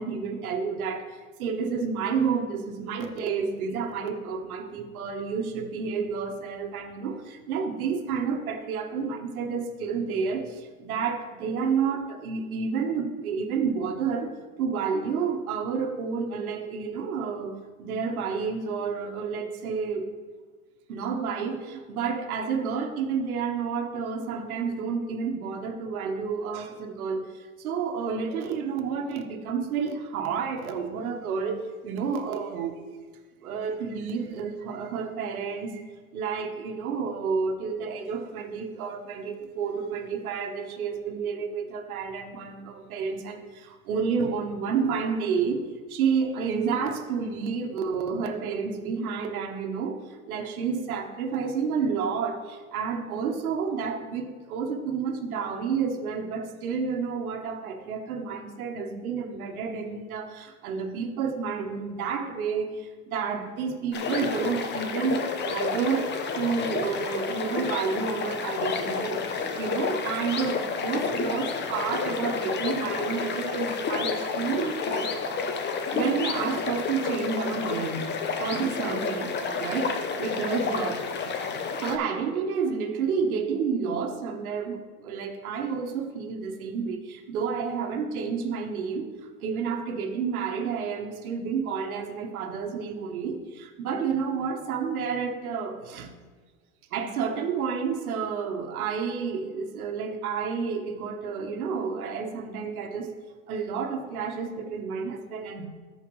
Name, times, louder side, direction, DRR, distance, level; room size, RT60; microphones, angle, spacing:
voice 1, 0.0-14.3 14.6-20.1 20.9-32.8 33.4-35.8 36.1-75.1 75.7-78.1 78.3-81.0 81.8-89.1 89.4-96.1 96.9-103.1 103.5-105.7, right 5 dB, 85° right, 4 dB, 1.3 m, -30 dB
sound 1, 63.9-82.0, left 5 dB, 25° left, 0.8 m, -30 dB
14.0 x 5.1 x 3.2 m, 1.4 s
supercardioid pair, 115°, 42 cm